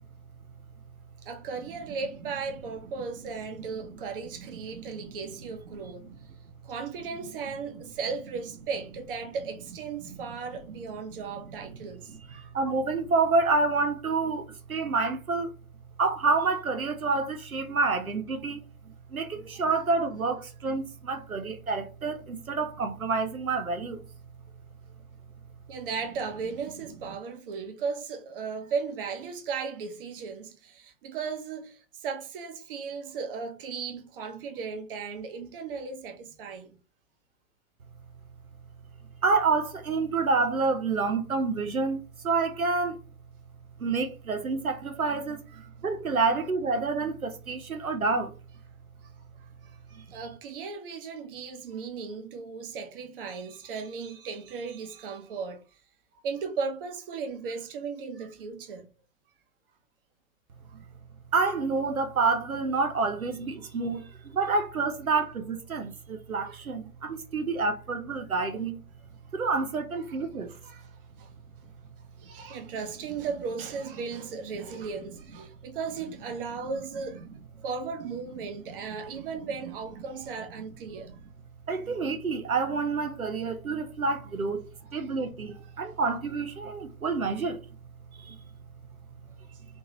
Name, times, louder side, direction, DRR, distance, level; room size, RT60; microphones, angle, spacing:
voice 1, 1.2-6.1 6.6-12.5 25.7-36.8 45.6-45.7 49.6-55.6 56.2-58.9 70.0-71.3 72.2-77.2 77.6-81.1 85.0-85.1 85.5-85.6, right 5 dB, 40° right, 0.8 m, -36 dB
voice 2, 12.6-14.4 14.7-15.5 16.0-18.6 19.1-20.8 21.1-22.2 22.5-24.0 39.2-42.0 42.2-42.9 43.8-45.4 45.8-48.3 61.3-64.0 64.4-65.8 66.3-66.8 67.3-68.8 69.4-70.5 81.7-84.6 84.9-85.5 85.8-87.5, right 4 dB, 85° right, 0.7 m, -27 dB
3.6 x 2.6 x 2.9 m
figure-of-eight pair, 110°, 41 cm